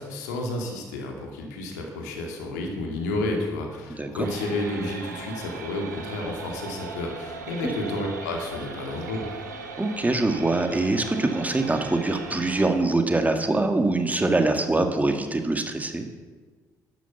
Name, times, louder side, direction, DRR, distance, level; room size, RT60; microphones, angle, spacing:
voice 1, 0.0-9.2, left 2 dB, 75° left, 1 dB, 2.5 m, -31 dB
sound 1, 4.2-12.7, right 4 dB, 80° right, 1.5 m, -38 dB
voice 2, 9.8-16.0, right 2 dB, 15° right, 5 dB, 2.0 m, -24 dB
12.5 x 12.0 x 7.0 m, 1.4 s
figure-of-eight pair, 45°, 9 cm